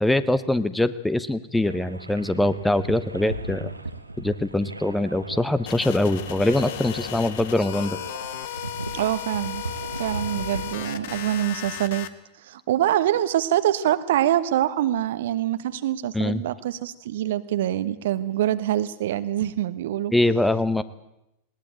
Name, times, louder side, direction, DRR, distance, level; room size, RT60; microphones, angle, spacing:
voice 1, 0.0-3.7 4.2-8.0 16.1-16.4 20.1-20.8, left 1 dB, 5° left, 14 dB, 1.1 m, -23 dB
sound 1, 1.6-11.2, right 2 dB, 85° right, 1.3 m, -37 dB
sound 2, 5.7-12.1, left 12 dB, 50° left, 1.4 m, -35 dB
voice 2, 8.9-9.6 9.9-12.1 12.4-20.1, right 12 dB, 55° right, 13 dB, 1.2 m, -25 dB
20.5 x 19.0 x 8.8 m, 0.87 s
figure-of-eight pair, 90°, 0 cm